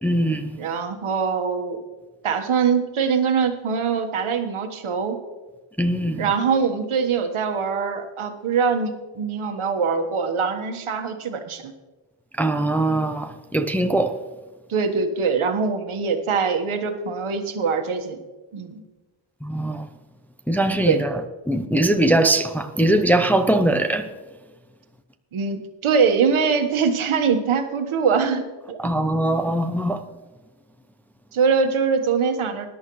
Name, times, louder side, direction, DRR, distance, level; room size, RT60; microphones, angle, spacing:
voice 1, 0.0-0.6 5.8-6.3 12.4-14.2 19.4-19.9 20.5-24.1 28.8-30.0, right 1 dB, 5° left, 0.5 m, -21 dB
voice 2, 0.6-1.8 2.2-5.2 6.2-11.7 14.7-18.2 18.5-18.8 20.8-21.0 25.3-28.9 31.3-32.7, right 5 dB, 75° right, 1.5 m, -23 dB
20.5 x 11.0 x 3.1 m
wide cardioid pair, 155°, 49 cm